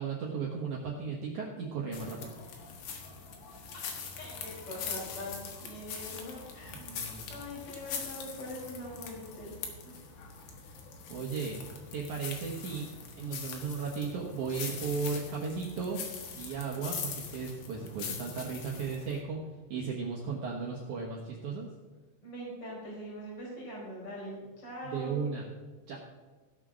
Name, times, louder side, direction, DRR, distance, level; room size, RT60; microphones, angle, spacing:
voice 1, 0.0-2.2 6.7-7.3 11.1-11.6 11.9-12.9 13.1-16.0 16.3-19.4 19.7-21.7 24.8-25.4 25.9-26.0, right 5 dB, 75° right, -2 dB, 1.7 m, -35 dB
sound 1, 1.9-19.2, left 6 dB, 65° left, 3.2 m, -42 dB
voice 2, 3.7-6.8 7.3-9.6 9.8-10.0 22.2-25.3, left 1 dB, 25° left, -5 dB, 5.0 m, -43 dB
16.5 x 6.1 x 6.3 m, 1.3 s
omnidirectional pair, 5.4 m